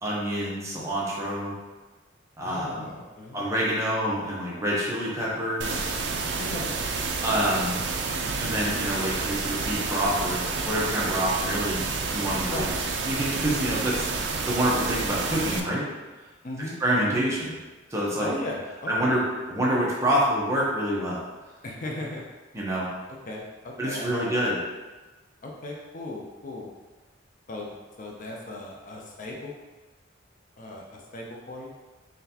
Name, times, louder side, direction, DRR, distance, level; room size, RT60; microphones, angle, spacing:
voice 1, 0.0-1.5 2.4-2.9 3.3-5.8 7.2-7.8 8.4-11.9 12.1-12.7 13.1-14.0 14.5-15.9 16.8-17.6 17.9-18.3 18.9-19.2 19.5-21.2 22.5-22.9 23.8-24.6, right 1 dB, 15° right, -6 dB, 0.8 m, -27 dB
voice 2, 2.4-3.4 6.4-6.8 12.5-12.7 16.4-16.8 18.2-19.1 21.6-22.2 23.3-24.3 25.4-26.7 27.5-27.7 28.0-29.5 30.6-31.7, left 2 dB, 40° left, -1 dB, 0.5 m, -36 dB
sound 1, 5.6-15.6, right 4 dB, 60° right, 0.4 m, -29 dB
3.9 x 3.3 x 2.8 m, 1.2 s
head